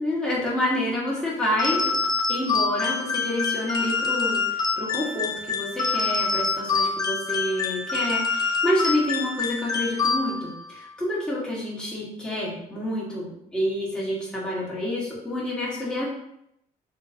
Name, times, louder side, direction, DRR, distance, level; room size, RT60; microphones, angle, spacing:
voice 1, 0.0-2.0 2.3-16.1, left 1 dB, 5° left, -6 dB, 1.4 m, -28 dB
sound 1, 1.6-10.6, left 4 dB, 20° left, 0.5 m, -26 dB
3.0 x 2.8 x 4.2 m, 0.78 s
cardioid pair, 110°, 17 cm